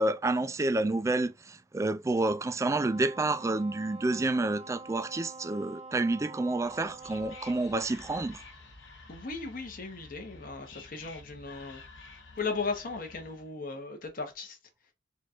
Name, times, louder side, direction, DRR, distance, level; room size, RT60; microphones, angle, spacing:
voice 1, 0.0-8.4, right 2 dB, 15° right, 0.3 m, -29 dB
Wind instrument woodwind instrument, 2.7-7.8, right 3 dB, 35° right, 0.7 m, -46 dB
Whispering, 6.6-13.5, left 3 dB, 75° left, 1.1 m, -51 dB
voice 2, 9.1-11.8 12.4-14.6, left 4 dB, 50° left, 1.1 m, -36 dB
4.1 x 2.5 x 4.3 m
head